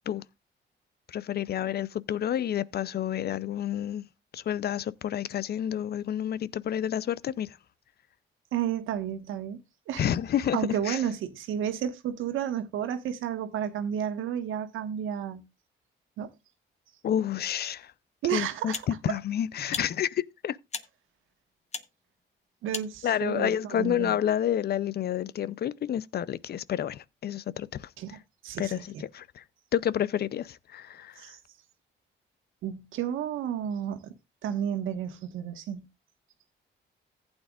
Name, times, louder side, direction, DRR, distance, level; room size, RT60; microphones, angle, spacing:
voice 1, 1.1-4.1 4.3-7.6 10.0-10.6 10.9-11.0 17.0-17.9 18.3-20.6 23.0-27.9 28.6-29.4 29.7-31.2, left 10 dB, 55° left, 0.5 m, -29 dB
voice 2, 8.5-9.6 9.9-10.1 10.5-15.4 16.2-16.3 18.2-18.8 22.6-24.2 28.0-28.2 28.4-28.8 31.2-31.4 32.6-34.1 34.4-35.9, right 9 dB, 85° right, 1.4 m, -32 dB
sound 1, 17.8-17.9 18.7-18.9 19.7-19.9 20.7-20.9 21.7-21.9 22.7-22.9, left 5 dB, 35° left, 0.9 m, -36 dB
14.5 x 8.8 x 2.4 m
cardioid pair, 90°, 20 cm